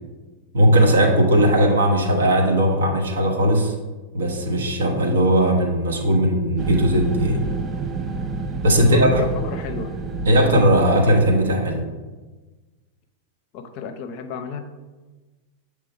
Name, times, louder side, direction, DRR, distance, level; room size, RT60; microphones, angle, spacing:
voice 1, 0.5-3.7 4.1-7.4 8.6-9.2 10.2-11.8, right 1 dB, 65° right, 1 dB, 1.1 m, -18 dB
sound 1, 6.6-11.8, right 3 dB, 25° right, 0.5 m, -29 dB
voice 2, 8.9-9.9 13.5-14.6, left 5 dB, 45° left, 8 dB, 0.6 m, -31 dB
7.6 x 3.3 x 4.6 m, 1.3 s
figure-of-eight pair, 90°, 0 cm